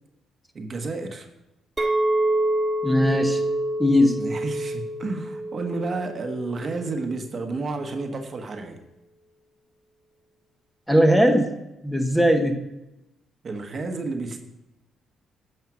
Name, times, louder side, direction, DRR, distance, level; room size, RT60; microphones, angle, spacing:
voice 1, 0.5-1.3 4.2-8.8 13.4-14.4, right 3 dB, 45° right, 5 dB, 1.1 m, -31 dB
Chink clink, 1.8-7.0, right 1 dB, 20° right, 1.4 m, -26 dB
voice 2, 2.8-3.4 3.8-4.2 10.9-11.5 11.8-12.6, equal, 5° left, 5 dB, 1.0 m, -19 dB
9.4 x 5.6 x 6.1 m, 0.96 s
cardioid pair, 90°, 0 cm